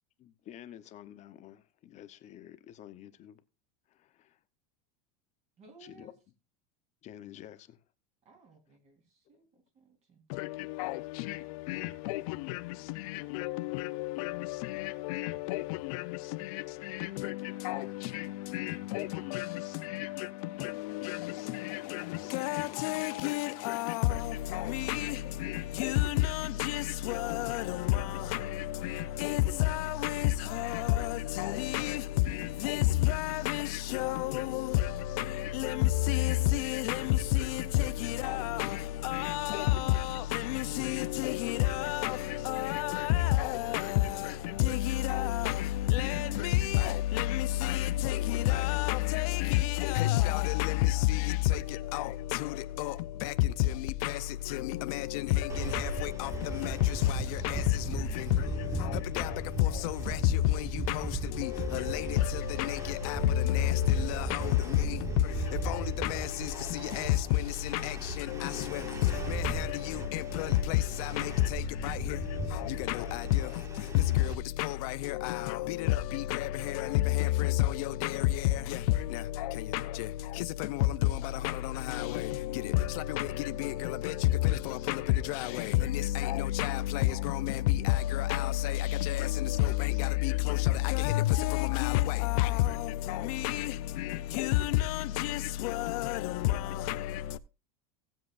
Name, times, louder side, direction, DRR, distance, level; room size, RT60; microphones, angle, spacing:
voice 1, 0.2-3.4 3.9-4.4 5.8-6.1 7.0-7.8 9.3-9.4 25.2-25.7 81.4-81.5, left 11 dB, 35° left, 0.9 m, -50 dB
voice 2, 5.6-6.1 8.2-10.3 23.1-25.4 26.1-28.5 29.5-31.9 33.3-33.5 34.2-35.0 36.0-36.9 37.3-39.1 40.9-41.2 41.5-43.4 46.1-46.4 48.0-48.1 48.3-50.4 53.1-53.2 61.1-61.3 64.2-65.5 66.7-67.4 68.4-68.8 70.6-72.4 73.2-73.6 74.4-74.7 81.7-82.5 82.8-83.3 91.2-91.3 91.6-93.1 93.6-93.8 94.6-94.9 95.2-95.5, right 5 dB, 35° right, 3.9 m, -59 dB
voice 3, 10.3-97.4, left 16 dB, 65° left, 0.6 m, -30 dB
sound 1, 55.5-74.3, right 2 dB, 15° right, 1.0 m, -37 dB
18.0 x 7.6 x 2.5 m
supercardioid pair, 145°, 20 cm